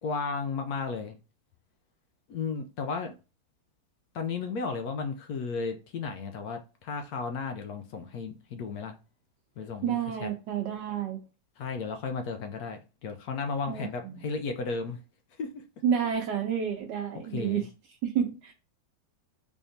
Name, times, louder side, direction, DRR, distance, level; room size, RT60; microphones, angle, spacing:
voice 1, 0.0-1.2 2.3-3.1 4.1-9.0 9.6-10.3 11.6-15.0 15.4-15.6 17.3-17.7, left 4 dB, 70° left, 0.9 m, -34 dB
voice 2, 9.8-11.2 13.7-14.3 15.8-17.7 18.0-18.5, right 8 dB, 70° right, 1.2 m, -30 dB
3.5 x 3.5 x 2.7 m
omnidirectional pair, 2.1 m